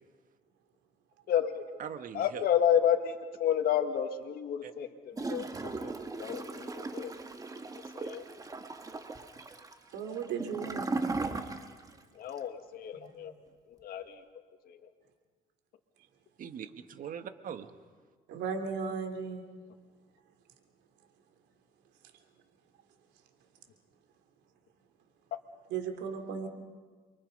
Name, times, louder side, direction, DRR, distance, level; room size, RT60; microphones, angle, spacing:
voice 1, 1.3-1.8 2.1-5.9 6.2-7.1 7.9-8.2 12.2-13.3 13.7-14.2 14.7-14.8, left 9 dB, 65° left, 6 dB, 1.9 m, -31 dB
voice 2, 1.8-2.4 4.6-4.7 16.4-17.7, right 8 dB, 55° right, 8 dB, 1.6 m, -41 dB
Gurgling / Toilet flush, 5.1-12.0 12.3-12.4, right 3 dB, 20° right, 1.7 m, -37 dB
voice 3, 9.9-10.9 12.9-13.1 18.3-19.4 25.7-26.5, right 6 dB, 85° right, 4 dB, 3.2 m, -36 dB
29.0 x 24.0 x 5.4 m, 1.5 s
cardioid pair, 110°, 17 cm